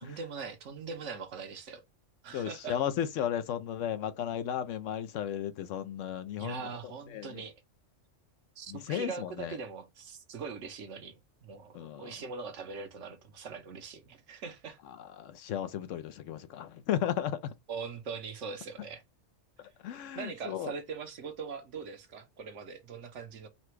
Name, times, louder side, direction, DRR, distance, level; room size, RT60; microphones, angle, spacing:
voice 1, 0.0-1.8 2.2-2.8 6.4-7.5 8.6-11.1 11.4-14.8 17.7-19.0 20.1-23.5, right 5 dB, 75° right, 1.2 m, -41 dB
voice 2, 2.3-6.7 7.1-7.4 8.7-9.6 11.7-12.1 14.9-17.5 19.8-20.7, left 10 dB, 90° left, 1.0 m, -34 dB
4.2 x 2.2 x 4.5 m
omnidirectional pair, 1.3 m